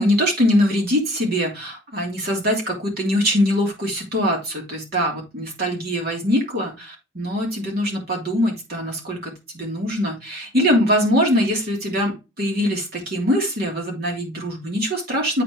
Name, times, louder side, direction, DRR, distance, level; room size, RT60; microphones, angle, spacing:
voice 1, 0.0-15.4, equal, 50° right, -1 dB, 3.1 m, -22 dB
8.5 x 4.5 x 3.3 m, 0.25 s
head